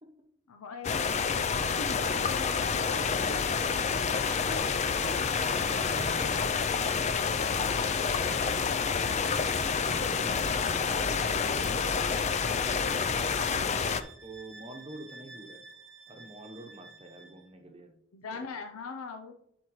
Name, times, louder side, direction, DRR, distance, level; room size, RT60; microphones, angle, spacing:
voice 1, 0.5-1.2 1.8-3.1 7.6-8.1 13.2-14.1 18.1-19.3, left 4 dB, 90° left, 5 dB, 0.6 m, -42 dB
sound 1, 0.8-14.0, left 5 dB, 30° left, 0.4 m, -28 dB
voice 2, 1.7-2.1 2.9-4.9 5.3-6.6 7.2-7.5 7.8-7.9 8.2-12.3 14.2-15.6 16.1-18.0 18.3-18.5, right 1 dB, 25° right, 5 dB, 0.9 m, -47 dB
Water tap faucet / Sink (filling or washing), 2.8-8.9, right 1 dB, 85° right, 0.9 m, -50 dB
Bowed string instrument, 3.7-17.5, right 3 dB, 55° right, 0.8 m, -51 dB
11.5 x 4.5 x 3.1 m, 0.71 s
head